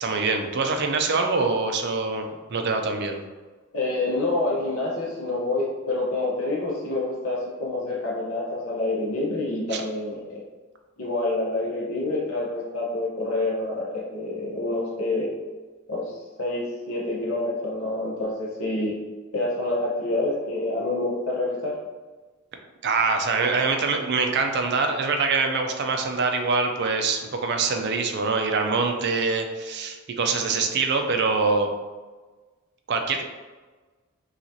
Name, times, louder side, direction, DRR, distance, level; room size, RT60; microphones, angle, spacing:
voice 1, 0.0-3.2 9.7-9.8 22.8-31.7 32.9-33.2, right 4 dB, 50° right, 4 dB, 0.5 m, -24 dB
voice 2, 3.7-10.4 11.0-15.3 15.9-18.9 19.3-21.7, left 2 dB, 75° left, -5 dB, 0.9 m, -27 dB
5.7 x 2.5 x 2.7 m, 1.3 s
head